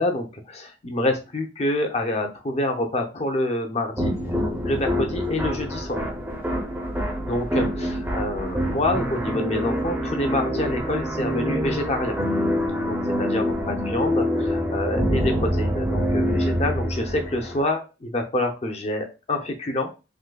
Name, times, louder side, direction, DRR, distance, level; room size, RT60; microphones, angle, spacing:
voice 1, 0.0-4.1 4.6-6.1 7.2-12.2 12.9-19.9, left 1 dB, 40° left, 4 dB, 0.7 m, -27 dB
sound 1, 4.0-17.6, equal, 10° right, 0.6 m, -26 dB
3.7 x 2.7 x 2.3 m, 0.29 s
head